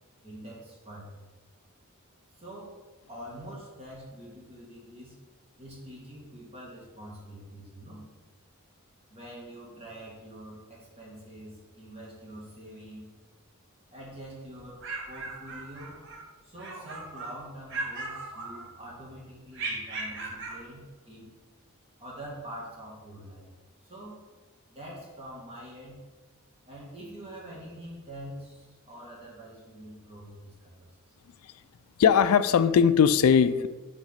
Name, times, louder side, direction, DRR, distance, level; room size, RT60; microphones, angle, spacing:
voice 1, 0.2-1.1 2.4-2.8 3.1-5.2 5.6-8.1 9.1-13.1 13.9-16.0 16.4-21.3 22.0-23.5 23.8-24.2 24.7-26.0 26.7-31.1, right 1 dB, 30° right, -5 dB, 2.0 m, -45 dB
sound 1, 14.6-16.2 16.6-17.4 17.7-19.0 19.5-20.6, right 3 dB, 60° right, 1.2 m, -37 dB
voice 2, 32.0-33.7, left 7 dB, 90° left, 14 dB, 0.3 m, -20 dB
5.9 x 3.8 x 5.7 m, 1.3 s
head